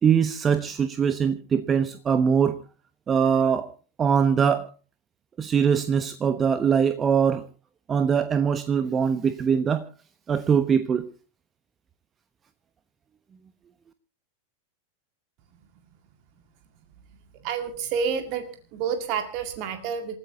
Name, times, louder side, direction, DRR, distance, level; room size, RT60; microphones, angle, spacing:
voice 1, 0.0-2.6 3.1-3.7 4.0-4.7 5.4-7.4 7.9-9.8 10.3-11.1, right 7 dB, 20° right, 11 dB, 1.0 m, -22 dB
voice 2, 17.4-20.2, right 6 dB, 40° right, 7 dB, 2.0 m, -29 dB
28.0 x 14.5 x 2.8 m, 0.36 s
figure-of-eight pair, 90°, 0 cm